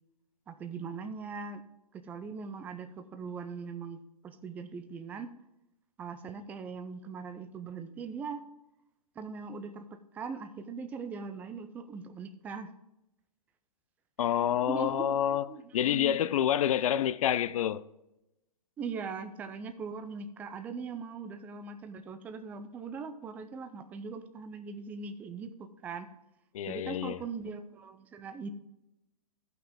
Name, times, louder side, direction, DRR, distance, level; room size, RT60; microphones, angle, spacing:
voice 1, 0.5-1.6 2.0-5.3 6.0-8.4 9.2-9.9 10.1-12.7 14.7-15.1 15.5-16.1 18.8-26.1 26.7-28.5, right 5 dB, 10° right, 0.3 m, -40 dB
voice 2, 14.2-15.5 15.7-17.8 26.5-27.2, left 10 dB, 60° left, 0.5 m, -28 dB
14.0 x 5.8 x 3.6 m
hypercardioid pair, 145°, 20 cm